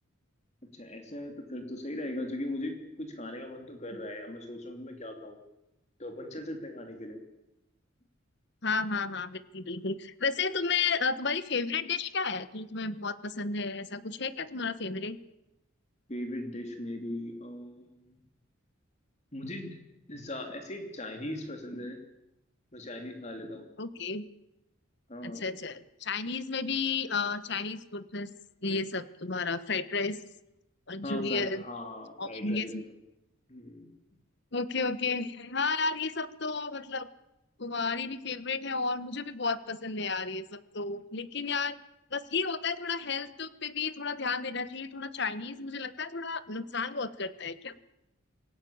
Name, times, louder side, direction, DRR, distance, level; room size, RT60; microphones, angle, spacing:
voice 1, 0.7-5.4 6.0-7.2 16.1-18.2 19.3-19.8 20.1-22.0 22.7-23.6 25.1-25.4 31.0-32.9 33.5-33.9, left 1 dB, 35° left, 5 dB, 3.0 m, -39 dB
voice 2, 8.6-15.2 23.8-24.2 25.2-28.3 28.6-30.2 30.9-31.6 32.2-32.8 34.5-37.1 37.6-41.8 42.1-47.7, left 4 dB, 55° left, 14 dB, 1.3 m, -32 dB
26.5 x 17.5 x 8.8 m, 0.90 s
head